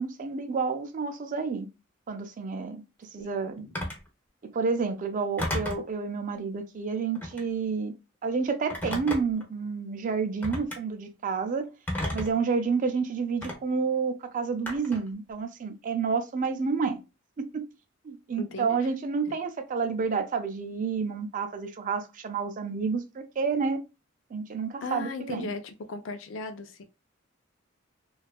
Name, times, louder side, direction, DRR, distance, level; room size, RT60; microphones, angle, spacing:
voice 1, 0.0-1.7 2.1-2.8 3.1-3.8 4.4-7.9 8.2-11.7 12.1-17.0 17.4-17.7 18.0-23.8 24.3-25.5, right 5 dB, 40° right, 0.4 m, -29 dB
Telephone, 3.7-4.1 5.4-5.9 7.1-7.5 8.7-9.4 10.4-10.8 11.9-12.4 13.4-13.6 14.7-15.1, left 1 dB, 10° left, 0.6 m, -32 dB
voice 2, 18.3-18.9 24.8-26.8, left 3 dB, 65° left, 0.4 m, -37 dB
2.7 x 2.3 x 2.2 m
head